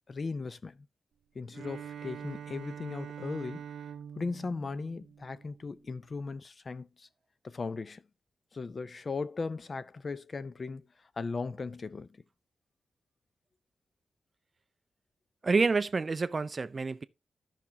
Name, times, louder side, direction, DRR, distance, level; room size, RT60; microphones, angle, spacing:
voice 1, 0.1-0.9 1.3-3.6 4.2-7.1 7.4-8.0 8.5-10.9 11.2-12.1, left 4 dB, 35° left, 0.5 m, -37 dB
Bowed string instrument, 1.5-5.8, right 8 dB, 70° right, 0.7 m, -44 dB
voice 2, 15.4-17.0, right 4 dB, 30° right, 0.4 m, -28 dB
13.5 x 5.8 x 2.8 m
wide cardioid pair, 155°, 0 cm